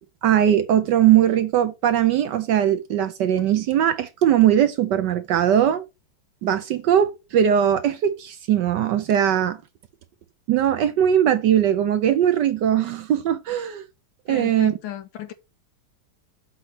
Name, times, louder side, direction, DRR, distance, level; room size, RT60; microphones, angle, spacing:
voice 1, 0.2-5.8 6.4-9.6 10.5-13.8 14.3-14.7, right 10 dB, 70° right, 1.1 m, -20 dB
voice 2, 14.3-15.3, left 11 dB, 75° left, 1.5 m, -35 dB
7.9 x 3.1 x 5.7 m
omnidirectional pair, 2.2 m